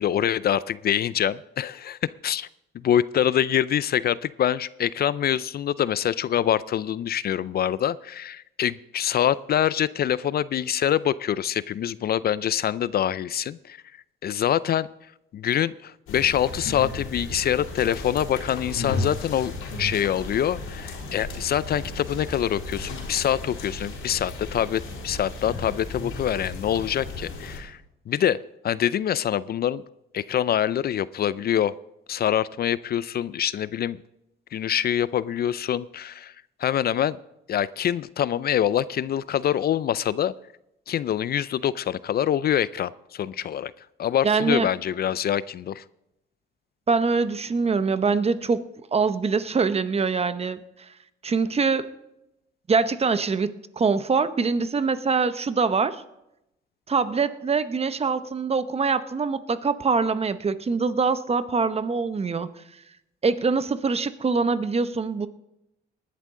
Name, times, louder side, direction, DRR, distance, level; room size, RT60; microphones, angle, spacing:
voice 1, 0.0-2.5 2.8-13.8 14.2-14.9 15.3-19.5 19.8-27.8 28.1-28.4 28.6-29.8 30.1-31.7 32.1-34.0 34.5-36.3 36.6-37.2 37.5-40.3 40.9-43.7 44.0-45.8, left 10 dB, 50° left, 18 dB, 0.4 m, -25 dB
sound 1, 16.1-27.6, left 2 dB, 85° left, 3.5 m, -35 dB
voice 2, 44.2-44.7 46.9-50.6 51.2-51.9 52.7-56.0 56.9-62.5 63.2-65.3, right 4 dB, 30° right, 12 dB, 0.8 m, -24 dB
19.5 x 11.0 x 3.7 m, 0.86 s
cardioid pair, 90°, 20 cm